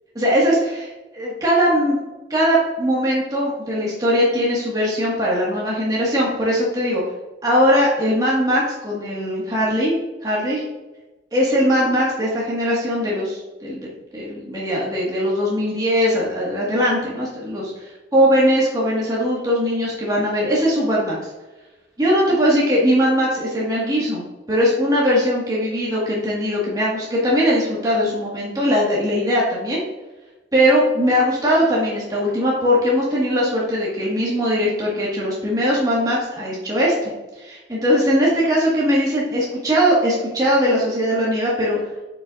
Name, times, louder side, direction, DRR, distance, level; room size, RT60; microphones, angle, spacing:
voice 1, 0.1-2.0 2.3-7.0 7.4-9.9 10.2-10.6 11.3-21.2 22.0-29.8 30.5-37.1 37.4-41.8, equal, 20° right, -5 dB, 1.6 m, -20 dB
8.6 x 6.0 x 2.5 m, 1.1 s
head